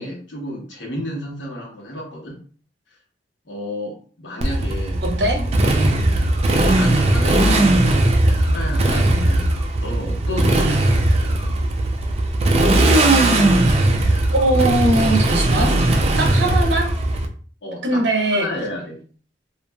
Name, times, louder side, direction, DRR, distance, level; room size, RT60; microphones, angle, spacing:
voice 1, 0.0-2.4 3.5-5.0 5.3-6.2 6.6-11.4 17.6-19.0, left 1 dB, 80° left, -1 dB, 1.0 m, -31 dB
Motorcycle, 4.4-17.3, right 1 dB, 35° right, 0.4 m, -18 dB
voice 2, 5.0-5.4 14.3-15.9 16.2-16.9 17.8-18.5, right 1 dB, 70° right, 2 dB, 0.8 m, -20 dB
2.9 x 2.4 x 2.3 m, 0.43 s
head